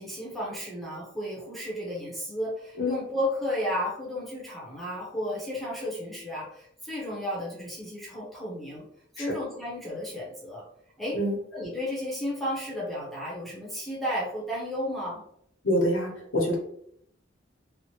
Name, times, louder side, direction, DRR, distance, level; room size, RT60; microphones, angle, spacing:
voice 1, 0.0-8.8 9.1-10.6 11.0-11.2 11.5-15.2, equal, ahead, -5 dB, 0.8 m, -33 dB
voice 2, 15.6-16.6, left 1 dB, 80° left, -1 dB, 0.9 m, -26 dB
2.9 x 2.1 x 2.9 m, 0.70 s
head